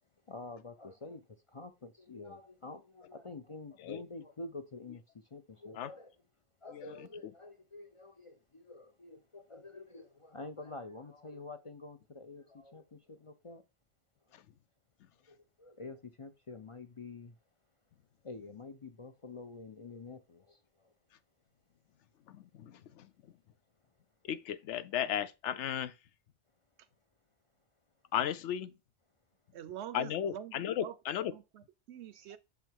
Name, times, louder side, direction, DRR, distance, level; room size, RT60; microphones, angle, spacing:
voice 1, 0.3-6.1 6.6-13.6 15.3-17.4 18.2-20.9 32.1-32.3, left 3 dB, 45° left, 0.4 m, -48 dB
voice 2, 24.3-25.9 28.1-28.7 29.9-31.3, left 10 dB, 80° left, 0.9 m, -34 dB
voice 3, 29.5-31.0 31.3-32.4, right 10 dB, 75° right, 0.9 m, -45 dB
6.5 x 3.5 x 4.5 m
omnidirectional pair, 1.2 m